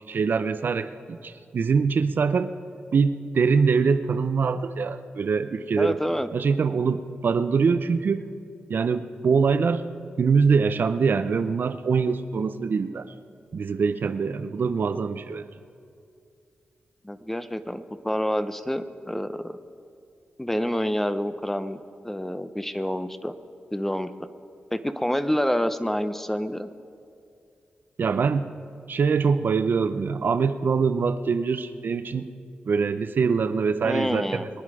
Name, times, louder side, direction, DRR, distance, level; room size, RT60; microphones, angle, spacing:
voice 1, 0.1-2.5 2.9-6.0 6.3-8.2 8.7-9.9 10.2-13.1 13.5-15.5 28.0-28.5 28.9-32.3 32.7-34.5, right 5 dB, 60° right, 11 dB, 0.6 m, -23 dB
voice 2, 5.8-6.3 17.0-19.6 20.4-23.3 23.7-24.1 24.7-26.7 33.8-34.4, equal, 10° left, 11 dB, 0.7 m, -27 dB
23.5 x 9.8 x 4.9 m, 2.4 s
cardioid pair, 75°, 4 cm